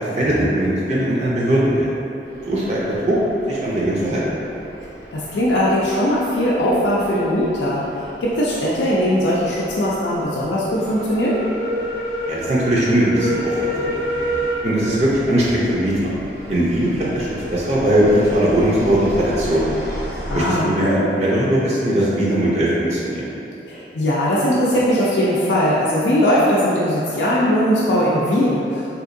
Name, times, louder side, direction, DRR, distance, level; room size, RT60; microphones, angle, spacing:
voice 1, 0.0-1.9 2.4-3.2 3.5-4.2 12.3-14.3 14.6-16.1 16.5-19.7 20.3-23.3, right 1 dB, 40° right, -7 dB, 0.5 m, -19 dB
sound 1, 2.2-20.5, equal, 70° right, 0.8 m, -31 dB
voice 2, 5.1-11.4 20.3-20.7 23.7-28.9, equal, 85° left, -7 dB, 0.4 m, -19 dB
3.5 x 2.8 x 2.5 m, 2.8 s
head